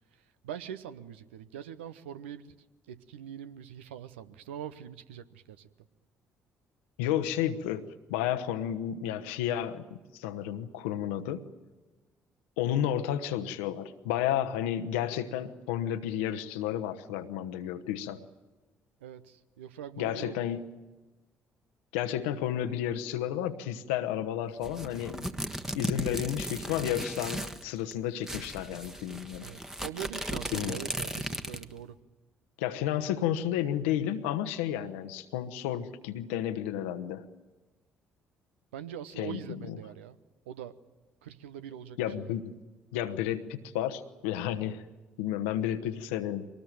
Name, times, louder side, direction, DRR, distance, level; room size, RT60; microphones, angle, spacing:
voice 1, 0.1-5.7 19.0-20.5 29.4-32.0 38.7-40.2 40.5-40.8 41.2-42.3, right 9 dB, 75° right, 12 dB, 0.8 m, -43 dB
voice 2, 7.0-11.5 12.6-18.2 20.0-20.7 21.9-25.3 25.7-29.5 30.5-30.8 32.6-37.3 39.2-39.8 42.0-42.5 42.9-44.8 45.2-46.5, left 11 dB, 75° left, 9 dB, 1.1 m, -32 dB
sound 1, 24.6-27.6 27.9-28.0 28.2-31.8, right 1 dB, 5° right, 1.3 m, -36 dB
24.0 x 19.0 x 9.2 m, 1.2 s
figure-of-eight pair, 50°, 6 cm